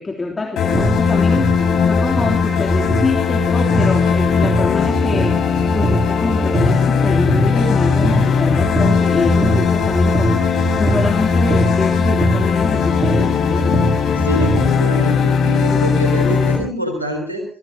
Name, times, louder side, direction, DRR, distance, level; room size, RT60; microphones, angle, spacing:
voice 1, 0.0-13.8, left 3 dB, 25° left, 1 dB, 3.2 m, -25 dB
sound 1, 0.6-16.6, left 6 dB, 60° left, 5.7 m, -18 dB
sound 2, 0.7-14.7, right 1 dB, 35° right, 4.7 m, -23 dB
voice 2, 14.2-17.4, equal, 90° right, 5 dB, 3.8 m, -24 dB
23.5 x 17.0 x 2.9 m, 0.42 s
figure-of-eight pair, 45°, 0 cm